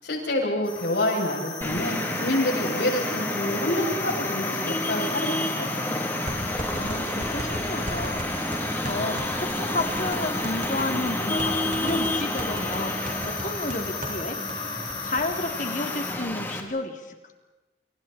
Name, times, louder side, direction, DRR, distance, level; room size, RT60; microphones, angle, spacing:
voice 1, 0.0-5.3 5.6-5.8, left 1 dB, 70° left, 0 dB, 7.9 m, -27 dB
sound 1, 0.6-16.1, left 4 dB, 30° left, 5.1 m, -35 dB
Traffic noise roadway noise, 1.6-16.6, left 1 dB, 10° left, 3.2 m, -30 dB
sound 2, 6.3-14.2 14.5-14.6 14.9-15.2, right 1 dB, 50° right, 5.9 m, -36 dB
voice 2, 6.8-14.4 15.0-17.1, left 2 dB, 45° left, 5 dB, 3.1 m, -32 dB
30.0 x 29.5 x 4.4 m, 1.1 s
head